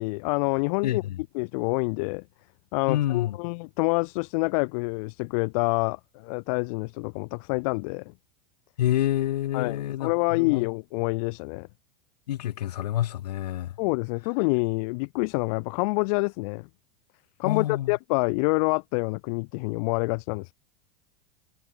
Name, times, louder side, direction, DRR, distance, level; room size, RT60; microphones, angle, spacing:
voice 1, 0.0-1.0 1.4-2.2 2.7-8.0 9.5-11.7 13.8-16.7 17.4-20.5, left 30 dB, 60° left, 1.9 m, -27 dB
voice 2, 0.8-1.2 2.9-3.4 8.8-10.7 12.3-13.8 17.4-18.0, left 12 dB, 75° left, 3.5 m, -28 dB
hypercardioid pair, 95°, 21 cm